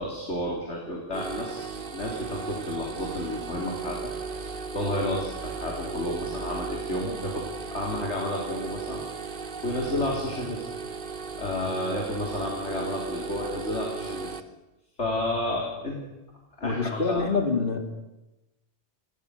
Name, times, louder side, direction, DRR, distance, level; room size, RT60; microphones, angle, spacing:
voice 1, 0.0-4.1 4.4-7.4 7.7-10.7 11.4-14.3 15.0-16.0 16.6-17.2, left 1 dB, 85° left, -1 dB, 4.3 m, -31 dB
sound 1, 1.1-14.4, right 5 dB, 50° right, 1.4 m, -36 dB
voice 2, 16.6-17.9, left 4 dB, 50° left, 5 dB, 2.8 m, -26 dB
28.5 x 21.5 x 6.7 m, 0.98 s
omnidirectional pair, 1.1 m